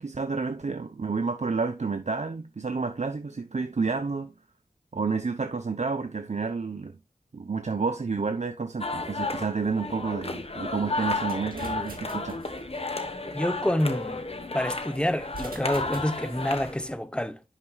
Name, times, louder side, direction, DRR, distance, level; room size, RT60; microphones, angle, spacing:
voice 1, 0.0-4.3 4.9-6.9 7.3-12.4, right 4 dB, 55° right, 0.7 m, -30 dB
sound 1, 8.8-16.9, left 3 dB, 45° left, 1.2 m, -33 dB
sound 2, 11.0-13.0 15.2-16.7, right 3 dB, 85° right, 2.0 m, -44 dB
voice 2, 13.3-14.3 14.5-17.4, left 1 dB, 5° left, 0.9 m, -28 dB
11.0 x 5.8 x 2.4 m
wide cardioid pair, 50°, 15 cm